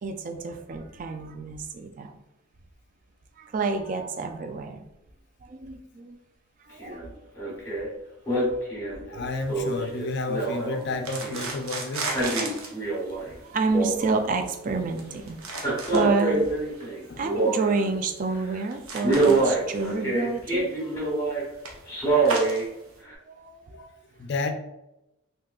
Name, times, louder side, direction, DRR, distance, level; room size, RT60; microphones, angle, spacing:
voice 1, 0.0-2.2 3.4-4.8 5.4-6.2 6.6-7.1 8.3-8.6 9.1-9.2 13.1-16.5 17.2-20.7 23.3-23.8, right 4 dB, 40° right, 6 dB, 0.3 m, -29 dB
Male speech man speaking, 6.8-7.0 7.4-7.9 8.3-11.5 11.9-13.3 13.5-14.4 15.5-17.9 18.3-18.6 19.0-21.4 21.9-22.6 23.1-23.2, right 2 dB, 15° left, 1.1 m, -26 dB
voice 2, 9.1-12.1 17.1-17.2 23.7-23.9 24.2-24.5, left 3 dB, 55° left, 5 dB, 0.4 m, -31 dB
sound 1, 9.3-23.0, right 3 dB, 85° right, 0.7 m, -38 dB
3.6 x 2.7 x 2.3 m, 0.89 s
head